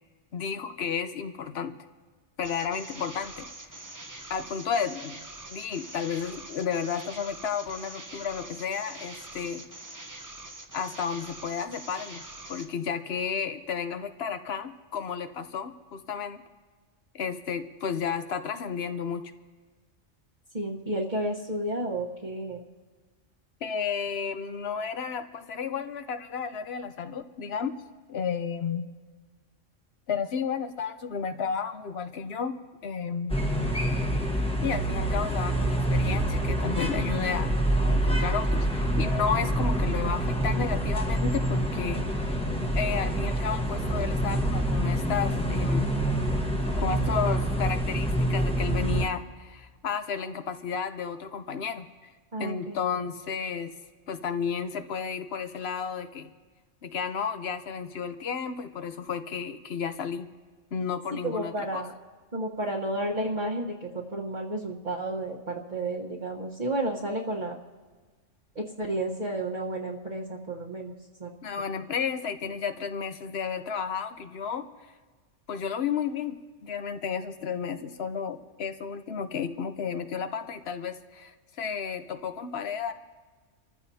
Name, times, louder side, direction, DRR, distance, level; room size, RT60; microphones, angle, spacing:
voice 1, 0.3-1.7 2.4-3.5 4.3-5.2 5.5-9.6 10.7-12.2 12.5-16.4 17.1-19.2 23.6-27.7 28.1-28.8 30.1-32.6 32.8-33.4 34.6-42.0 42.7-45.9 46.8-51.9 52.4-53.7 54.1-56.3 56.8-60.3 60.7-61.8 71.4-74.7 75.5-76.4 76.6-82.9, left 6 dB, 60° left, 9 dB, 1.0 m, -32 dB
sound 1, 2.4-12.7, right 2 dB, 20° right, 0.7 m, -44 dB
voice 2, 20.5-22.6 52.3-52.8 61.2-61.9 62.3-67.6 68.5-70.9 71.2-71.3, right 1 dB, 35° right, -5 dB, 1.3 m, -31 dB
sound 2, 33.3-49.1, right 1 dB, 5° left, 1.2 m, -26 dB
28.5 x 14.5 x 2.8 m, 1.4 s
omnidirectional pair, 1.3 m